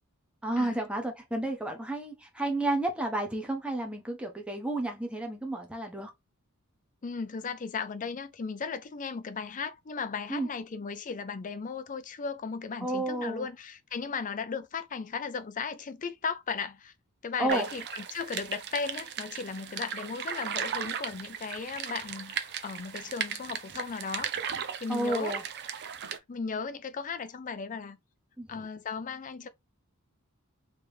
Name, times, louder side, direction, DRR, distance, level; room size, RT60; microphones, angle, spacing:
voice 1, 0.4-6.1 10.3-10.5 12.8-13.5 17.4-17.7 24.9-25.4 28.4-28.7, right 2 dB, 5° right, 0.9 m, -31 dB
voice 2, 7.0-16.9 17.2-24.3 24.8-25.4 26.3-28.0 28.5-29.5, left 5 dB, 35° left, 0.5 m, -36 dB
sound 1, 17.5-26.2, right 8 dB, 50° right, 0.5 m, -36 dB
3.4 x 3.0 x 3.2 m
head